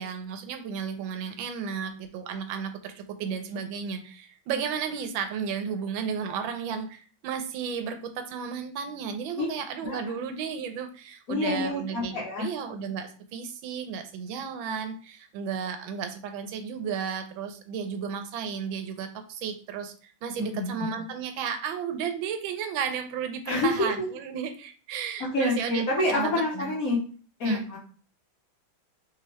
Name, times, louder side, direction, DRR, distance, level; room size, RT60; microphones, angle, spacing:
voice 1, 0.0-26.7 27.4-27.7, right 7 dB, 90° right, 7 dB, 1.3 m, -33 dB
voice 2, 11.3-12.5 20.4-20.7 23.5-23.9 25.3-27.0 27.4-27.8, left 2 dB, 60° left, -2 dB, 1.1 m, -27 dB
3.4 x 2.8 x 3.0 m, 0.40 s
omnidirectional pair, 2.1 m